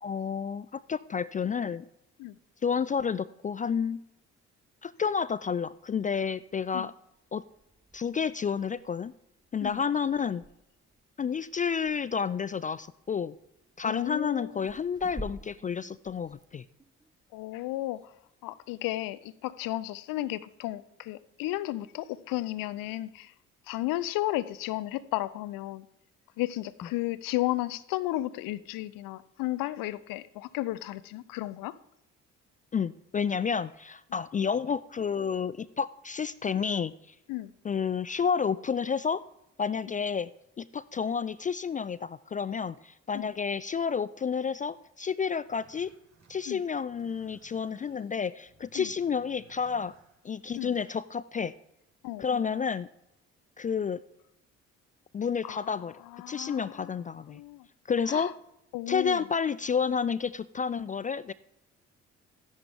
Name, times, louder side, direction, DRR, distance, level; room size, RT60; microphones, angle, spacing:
voice 1, 0.0-1.9 2.6-4.0 4.8-6.9 7.3-7.4 7.9-9.1 9.5-10.4 11.2-13.3 13.8-16.6 32.7-36.9 37.6-39.2 39.6-40.3 40.6-45.9 46.3-49.9 50.2-51.5 52.2-52.9 53.6-54.0 55.1-55.9 56.3-57.4 57.9-58.3 58.9-61.3, left 6 dB, 25° left, 0.3 m, -30 dB
sound 1, 5.4-18.7, right 1 dB, 10° right, 1.1 m, -51 dB
voice 2, 13.8-14.7 17.3-18.0 18.4-23.3 23.7-25.9 26.4-31.8 37.3-37.5 43.1-43.3 46.5-46.6 48.7-48.9 50.6-50.7 52.0-52.4 55.4-55.8 56.1-56.9 57.3-57.7 58.1-58.3 58.7-59.2, left 16 dB, 65° left, 0.6 m, -33 dB
sound 2, 45.5-51.0, right 5 dB, 45° right, 4.6 m, -62 dB
13.5 x 10.5 x 3.6 m
hypercardioid pair, 45°, 36 cm